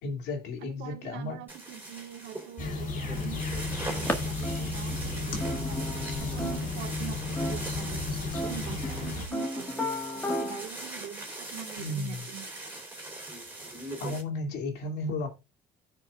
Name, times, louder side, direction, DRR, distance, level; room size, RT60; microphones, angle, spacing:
voice 1, 0.0-1.4 11.8-12.2 14.0-15.3, left 2 dB, 80° left, 2.7 m, -34 dB
voice 2, 0.6-12.5, right 10 dB, 90° right, 1.7 m, -44 dB
sound 1, 1.5-14.2, right 2 dB, 10° right, 4.0 m, -41 dB
sound 2, 2.6-9.3, left 3 dB, 55° left, 3.0 m, -33 dB
sound 3, 4.1-4.2 4.4-7.0 7.4-7.9 8.3-10.7, left 1 dB, 10° left, 1.8 m, -34 dB
16.0 x 5.9 x 2.4 m
cardioid pair, 110°, 17 cm